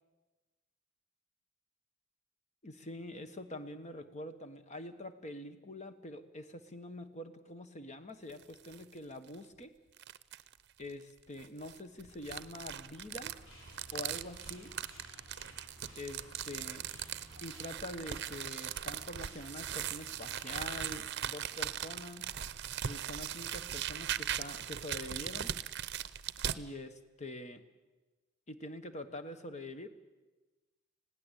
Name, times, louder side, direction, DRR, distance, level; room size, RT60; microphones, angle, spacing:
voice 1, 2.6-9.7 10.8-13.3 13.9-14.7 16.0-16.8 17.4-22.3 22.8-25.5 26.6-27.6 28.5-29.9, left 1 dB, 35° left, 9 dB, 1.4 m, -45 dB
sound 1, 8.3-8.8 9.3-9.4 10.0-10.5 11.4-26.6, right 10 dB, 60° right, 0.7 m, -39 dB
sound 2, 13.2-20.9, equal, 80° left, 7.5 m, -55 dB
20.5 x 16.5 x 8.3 m, 1.2 s
head